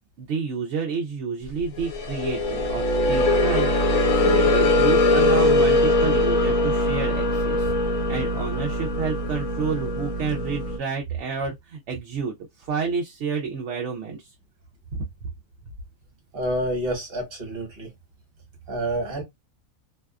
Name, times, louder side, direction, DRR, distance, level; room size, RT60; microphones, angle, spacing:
voice 1, 0.2-7.7 8.1-14.3 15.2-15.3, right 5 dB, 65° right, 0.8 m, -30 dB
sound 1, 1.7-10.8, left 2 dB, 70° left, 1.1 m, -21 dB
voice 2, 16.3-17.9 18.7-19.2, right 1 dB, 45° right, 1.2 m, -28 dB
2.7 x 2.3 x 2.2 m
omnidirectional pair, 1.5 m